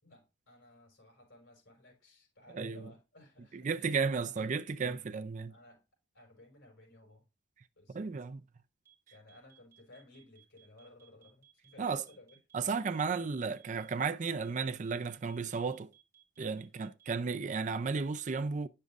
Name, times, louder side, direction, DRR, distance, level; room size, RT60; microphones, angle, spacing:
voice 1, 0.0-4.4 5.5-5.8 6.1-7.2 7.8-8.0 9.1-13.0 13.5-13.7, left 1 dB, 80° left, 4.9 m, -58 dB
voice 2, 2.5-2.9 3.5-5.5 7.9-8.4 11.8-12.0 12.5-15.9 16.4-18.7, right 5 dB, 40° right, 0.4 m, -34 dB
sound 1, 8.9-17.2, right 12 dB, 15° right, 2.6 m, -63 dB
9.3 x 6.6 x 2.4 m
head